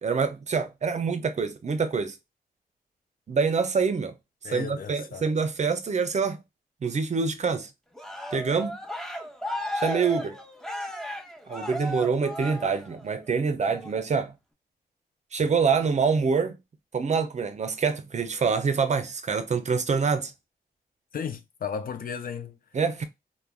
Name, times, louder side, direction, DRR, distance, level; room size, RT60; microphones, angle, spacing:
voice 1, 0.0-2.2 3.3-4.1 4.5-6.4 6.8-7.7 8.3-8.8 9.7-10.4 11.5-14.3 15.3-16.6 16.9-20.3 22.7-23.0, right 5 dB, 45° right, 0.5 m, -26 dB
voice 2, 4.4-5.2 21.1-22.6, left 7 dB, 60° left, 0.5 m, -34 dB
Cheering, 8.0-13.2 13.7-14.0, equal, 5° left, 0.6 m, -35 dB
3.3 x 2.2 x 2.3 m
cardioid pair, 70°, 16 cm